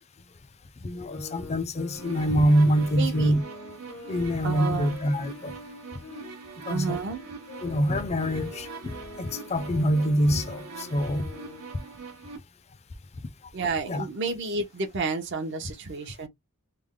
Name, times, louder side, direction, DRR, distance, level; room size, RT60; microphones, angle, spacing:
voice 1, 0.8-3.4 4.1-5.5 6.7-7.0 7.6-11.3 13.9-14.1, equal, 30° left, 0.5 m, -25 dB
sound 1, 0.9-6.3 6.8-11.7, left 3 dB, 80° left, 0.9 m, -45 dB
sound 2, 1.9-12.4, right 4 dB, 90° right, 1.0 m, -43 dB
voice 2, 3.0-3.3 4.4-5.0 6.7-7.2 13.5-16.3, right 4 dB, 55° right, 0.7 m, -31 dB
3.3 x 2.1 x 3.6 m
head